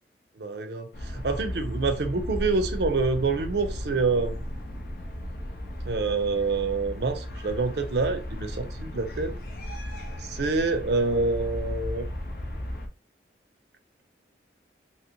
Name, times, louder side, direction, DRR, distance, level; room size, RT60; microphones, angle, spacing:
voice 1, 0.4-4.4 5.9-9.4 10.2-12.1, right 3 dB, 70° right, 0.5 m, -27 dB
sound 1, 0.9-12.9, equal, 55° left, 0.6 m, -35 dB
2.9 x 2.9 x 2.7 m
head